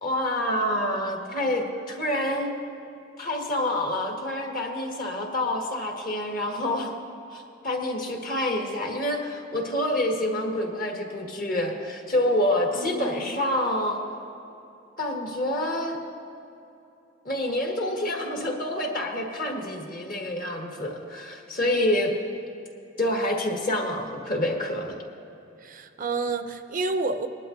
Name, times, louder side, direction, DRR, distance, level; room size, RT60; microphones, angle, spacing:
voice 1, 0.0-2.5 3.2-6.9 7.3-14.0 15.0-16.0 17.2-22.1 23.0-24.9, left 1 dB, 45° left, 1 dB, 1.6 m, -27 dB
voice 2, 12.7-13.4 25.6-27.3, right 3 dB, 45° right, 8 dB, 0.5 m, -30 dB
20.5 x 11.5 x 2.6 m, 2.8 s
head